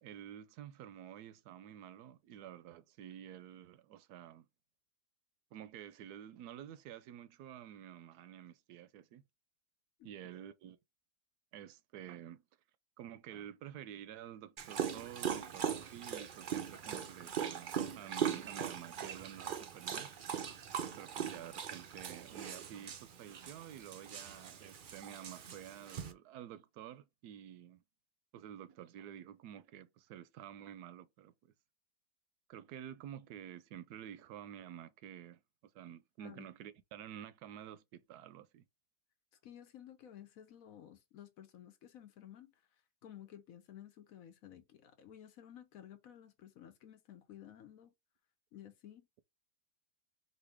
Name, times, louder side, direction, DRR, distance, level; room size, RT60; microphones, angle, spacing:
voice 1, 0.0-4.5 5.5-9.2 10.0-10.8 11.5-12.4 13.0-20.1 21.0-27.8 28.3-31.3 32.5-38.6, right 10 dB, 80° right, 1.1 m, -50 dB
Dog, 14.6-26.1, right 8 dB, 65° right, 0.5 m, -40 dB
voice 2, 39.4-42.5 43.0-47.9 48.5-49.1, left 10 dB, 65° left, 1.1 m, -54 dB
4.2 x 2.7 x 3.4 m
omnidirectional pair, 1.7 m